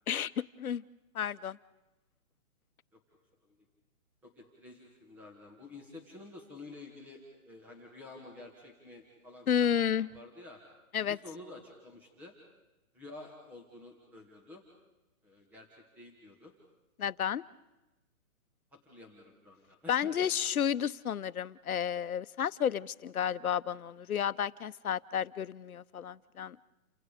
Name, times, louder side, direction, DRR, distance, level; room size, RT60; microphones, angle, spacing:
voice 1, 0.1-0.8 1.1-1.6 9.5-10.1 10.9-11.2 17.0-17.4 19.9-26.6, left 8 dB, 90° left, 15 dB, 1.0 m, -31 dB
voice 2, 4.2-10.6 11.0-12.4 12.9-14.6 15.2-16.5 18.7-20.2, left 2 dB, 5° right, 0 dB, 1.8 m, -50 dB
29.5 x 26.0 x 5.1 m, 1.0 s
hypercardioid pair, 175°, 42 cm